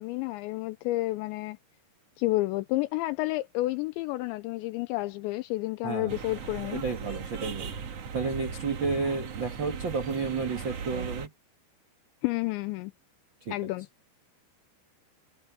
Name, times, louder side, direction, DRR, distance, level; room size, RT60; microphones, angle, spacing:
voice 1, 0.0-1.6 2.2-6.8 12.2-12.9 13.5-13.9, left 19 dB, 85° left, 2.9 m, -30 dB
voice 2, 5.8-6.1 6.7-7.7 8.1-11.3 13.4-13.5, right 4 dB, 75° right, 1.0 m, -31 dB
sound 1, 6.1-11.3, right 6 dB, 55° right, 1.7 m, -38 dB
omnidirectional pair, 5.3 m